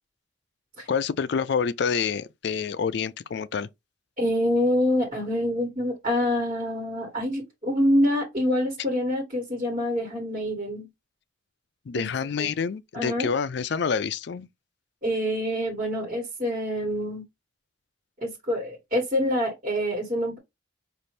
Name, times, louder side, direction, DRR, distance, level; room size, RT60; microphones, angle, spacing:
voice 1, 0.9-3.7 11.9-14.5, left 6 dB, 55° left, 0.4 m, -27 dB
voice 2, 4.2-10.9 11.9-12.1 12.4-12.5 12.9-13.3 15.0-17.2 18.2-20.4, equal, 35° right, 1.4 m, -26 dB
5.5 x 2.5 x 3.2 m
head